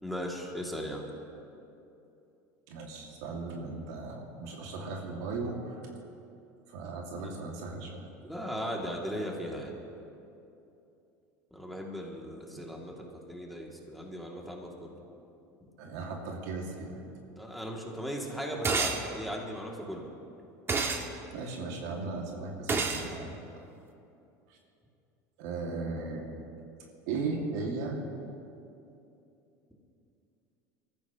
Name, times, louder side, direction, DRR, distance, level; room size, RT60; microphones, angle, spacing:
voice 1, 0.0-1.1 8.2-9.7 11.5-14.9 17.4-20.1, equal, ahead, -2 dB, 2.6 m, -37 dB
voice 2, 2.7-5.9 6.7-8.1 12.5-12.7 15.8-17.0 21.3-23.6 24.5-24.6 25.4-26.3 27.1-28.0, right 3 dB, 75° right, 0 dB, 2.3 m, -37 dB
sound 1, 18.6-19.0 20.7-21.0 22.7-23.1, right 4 dB, 25° right, 1.4 m, -28 dB
23.0 x 14.5 x 3.1 m, 2.8 s
supercardioid pair, 95°, 9 cm